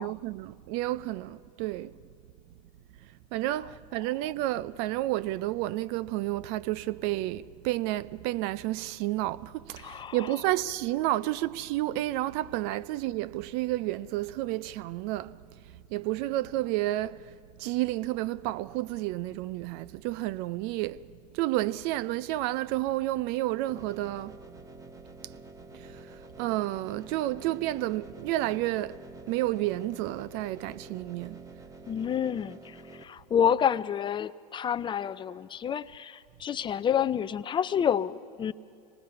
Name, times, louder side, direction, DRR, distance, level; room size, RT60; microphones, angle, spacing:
voice 1, 0.0-1.9 3.0-15.4 15.7-21.1 21.3-24.4 25.2-25.3 25.7-29.0 29.3-31.6, right 16 dB, 60° right, 0.5 m, -31 dB
voice 2, 9.8-10.2 31.9-38.5, left 8 dB, 25° left, 0.4 m, -29 dB
sound 1, 23.7-33.0, right 2 dB, 15° right, 1.2 m, -48 dB
24.5 x 19.5 x 5.7 m
supercardioid pair, 105°, 19 cm